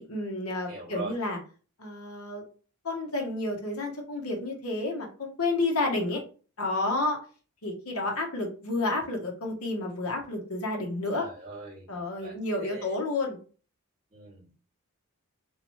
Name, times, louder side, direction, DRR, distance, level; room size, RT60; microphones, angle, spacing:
voice 1, 0.0-1.4 1.8-2.4 2.8-6.2 6.6-7.2 7.6-11.2 11.9-13.4, left 2 dB, 70° left, 1 dB, 1.1 m, -30 dB
voice 2, 0.7-1.1 11.1-11.9 12.2-12.9 14.1-14.6, right 3 dB, 30° right, -9 dB, 2.1 m, -41 dB
3.6 x 3.0 x 3.1 m, 0.38 s
head